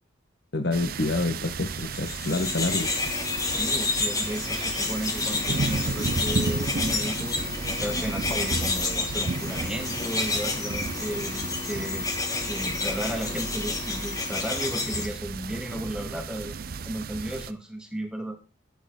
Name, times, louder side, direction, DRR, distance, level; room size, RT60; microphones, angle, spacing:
voice 1, 0.5-2.9, left 2 dB, 60° left, 9 dB, 1.4 m, -27 dB
sound 1, 0.7-17.5, right 4 dB, 50° right, 0.5 m, -34 dB
sound 2, 1.8-15.1, left 3 dB, 20° left, 1.5 m, -30 dB
voice 2, 3.4-7.4 7.8-12.1 12.5-16.6 16.8-18.4, right 1 dB, 5° right, 3 dB, 2.2 m, -34 dB
12.5 x 8.0 x 3.9 m, 0.31 s
head